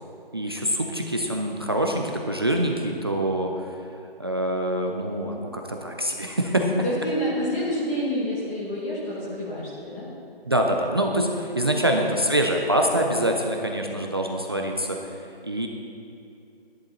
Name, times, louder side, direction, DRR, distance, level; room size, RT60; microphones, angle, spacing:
voice 1, 0.3-3.7 4.2-6.7 10.5-15.0 15.4-15.7, right 1 dB, 25° right, 1 dB, 0.5 m, -25 dB
voice 2, 6.5-10.1, equal, 15° left, -8 dB, 1.2 m, -28 dB
11.5 x 10.5 x 4.2 m, 2.6 s
figure-of-eight pair, 150°, 30 cm